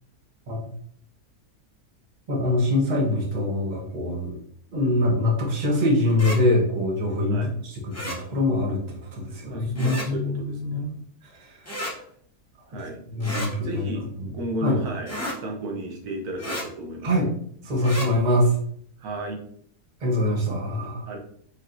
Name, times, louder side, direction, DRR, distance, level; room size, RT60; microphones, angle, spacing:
voice 1, 2.3-4.4 4.7-11.0 11.2-11.7 13.1-13.8 14.2-14.3 14.6-14.8 17.0-17.3 17.6-18.6 20.0-21.0, left 1 dB, 35° right, -1 dB, 1.0 m, -24 dB
sound 1, 6.1-6.4 7.9-8.2 9.8-10.1 11.7-11.9 13.2-13.5 15.1-15.4 16.4-16.7 17.8-18.1, equal, 15° left, 0.5 m, -32 dB
voice 2, 9.4-10.9 11.9-12.1 12.7-14.1 14.3-15.1 15.4-17.1 19.0-19.4 21.1-21.2, right 1 dB, 85° right, 1 dB, 1.4 m, -33 dB
4.7 x 3.5 x 2.5 m, 0.63 s
omnidirectional pair, 1.6 m